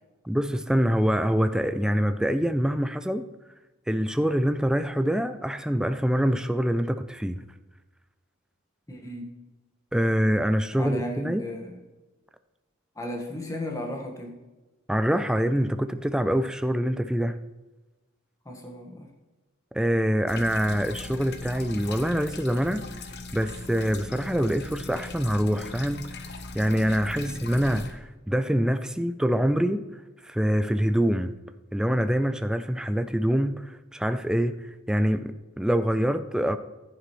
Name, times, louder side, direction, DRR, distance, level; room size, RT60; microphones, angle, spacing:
voice 1, 0.2-3.2 3.9-7.4 9.9-11.4 14.9-17.4 19.7-22.8 23.3-29.8 30.2-31.3 31.7-36.6, equal, 5° right, 9 dB, 0.3 m, -25 dB
voice 2, 8.9-9.3 10.7-11.8 12.9-14.4 18.4-19.1 27.1-27.4, left 1 dB, 15° left, 1 dB, 1.4 m, -35 dB
sound 1, 20.3-27.9, left 2 dB, 50° left, 0.9 m, -40 dB
11.0 x 10.0 x 3.1 m, 1.1 s
head